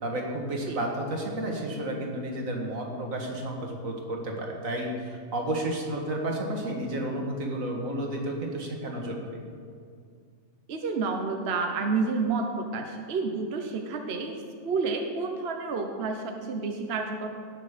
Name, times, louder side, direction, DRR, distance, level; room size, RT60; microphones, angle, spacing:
voice 1, 0.0-9.4, right 1 dB, 80° right, 1 dB, 2.1 m, -32 dB
voice 2, 10.7-14.4 14.6-17.3, right 4 dB, 55° right, 4 dB, 1.1 m, -29 dB
17.5 x 6.4 x 5.1 m, 2.2 s
omnidirectional pair, 1.4 m